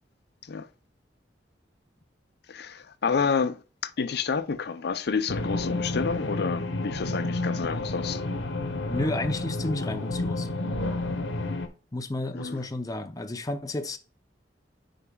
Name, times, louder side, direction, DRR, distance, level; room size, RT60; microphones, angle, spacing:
voice 1, 2.5-8.2 12.3-12.6, left 5 dB, 65° left, 0.6 m, -29 dB
sound 1, 5.3-11.7, left 2 dB, 90° left, 0.9 m, -30 dB
voice 2, 8.9-10.5 11.9-14.0, left 2 dB, 20° left, 0.5 m, -32 dB
10.0 x 4.7 x 2.3 m
head